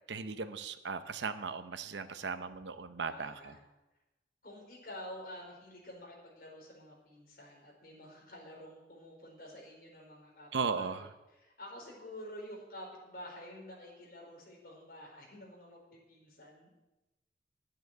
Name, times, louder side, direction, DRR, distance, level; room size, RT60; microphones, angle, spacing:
voice 1, 0.1-3.5 10.5-11.1, right 5 dB, 85° right, 11 dB, 0.8 m, -37 dB
voice 2, 3.0-3.6 4.4-10.5 10.7-16.7, left 1 dB, 50° left, -2 dB, 4.6 m, -49 dB
11.0 x 9.0 x 7.8 m, 1.0 s
head